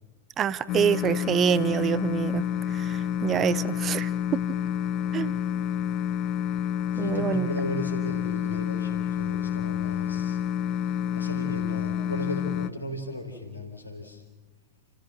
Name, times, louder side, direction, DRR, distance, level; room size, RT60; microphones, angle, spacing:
voice 1, 0.4-4.4 5.1-5.3 7.0-7.5, right 9 dB, 25° right, 17 dB, 0.8 m, -26 dB
sound 1, 0.7-12.7, left 9 dB, 40° left, 0.8 m, -29 dB
voice 2, 6.9-10.4 10.8-14.2, left 1 dB, 85° left, 1 dB, 3.9 m, -36 dB
29.0 x 15.5 x 8.0 m, 1.2 s
figure-of-eight pair, 90°, 0 cm